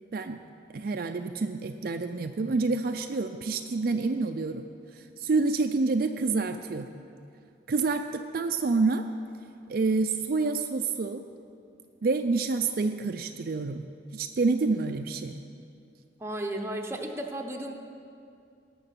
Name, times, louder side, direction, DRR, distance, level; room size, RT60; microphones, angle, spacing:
voice 1, 0.1-0.4 0.7-4.6 4.9-6.9 7.7-9.1 9.7-11.2 12.0-13.8 14.1-15.4, right 3 dB, 55° right, 6 dB, 0.4 m, -28 dB
voice 2, 16.2-17.7, right 1 dB, 15° right, 3 dB, 0.8 m, -34 dB
18.5 x 6.3 x 5.9 m, 2.5 s
head